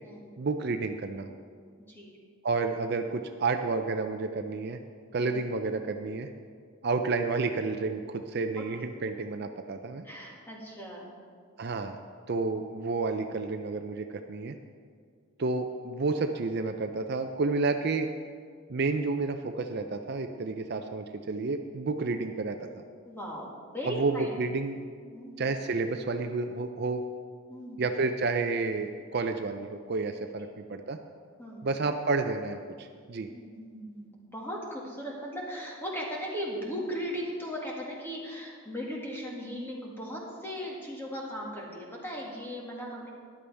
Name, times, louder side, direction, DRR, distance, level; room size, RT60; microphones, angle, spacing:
voice 1, 0.4-1.3 2.4-4.8 5.1-6.3 6.8-10.0 11.6-12.0 12.3-14.6 15.4-18.1 18.7-22.8 23.8-24.8 25.4-27.0 27.8-31.0 31.6-33.3, right 3 dB, 50° right, 7 dB, 0.5 m, -30 dB
voice 2, 8.6-9.0 10.0-11.1 23.0-24.4 25.1-25.5 27.5-27.8 31.4-31.8 33.3-43.1, equal, 10° left, -4 dB, 2.0 m, -38 dB
14.0 x 11.0 x 3.5 m, 2.1 s
head